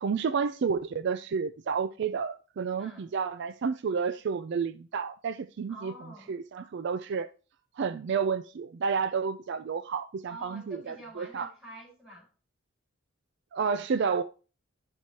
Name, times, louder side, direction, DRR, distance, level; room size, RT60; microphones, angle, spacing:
voice 1, 0.0-5.9 6.3-7.3 7.8-11.5 13.5-14.2, right 5 dB, 55° right, 0.4 m, -30 dB
voice 2, 5.7-6.3 10.3-12.3, right 1 dB, 5° right, 4.4 m, -47 dB
12.0 x 4.5 x 2.8 m
head